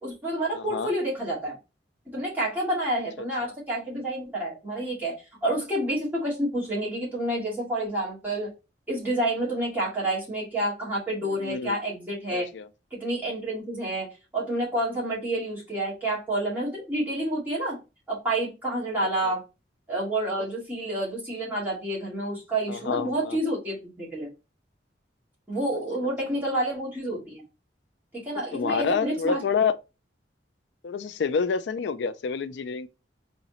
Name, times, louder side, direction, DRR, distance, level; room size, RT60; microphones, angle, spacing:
voice 1, 0.0-1.5 2.1-5.1 5.4-8.5 8.9-12.5 12.9-14.1 14.3-17.8 18.1-19.4 19.9-24.3 25.5-27.4 28.1-29.4, right 1 dB, 10° right, 2.3 m, -29 dB
voice 2, 0.5-0.9 3.4-3.5 11.2-11.8 12.3-12.7 19.2-19.3 22.7-23.4 26.0-26.1 28.5-29.7 30.8-32.9, left 5 dB, 75° left, 0.4 m, -28 dB
4.0 x 3.6 x 2.9 m
head